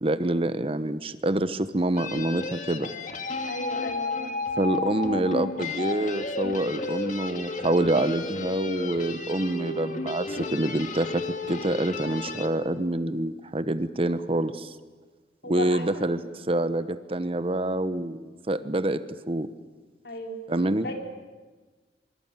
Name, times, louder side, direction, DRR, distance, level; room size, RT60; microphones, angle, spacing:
voice 1, 0.0-2.9 4.6-14.7 15.5-16.2 16.5-19.0 19.3-19.5 20.5-20.8, right 1 dB, 30° right, 12 dB, 1.0 m, -26 dB
sound 1, 2.0-12.5, left 3 dB, 45° left, 2.3 m, -33 dB
voice 2, 3.5-4.5 15.4-16.3 20.0-20.4 20.8-20.9, left 1 dB, 65° left, 3 dB, 4.6 m, -35 dB
26.0 x 24.5 x 9.1 m, 1.3 s
head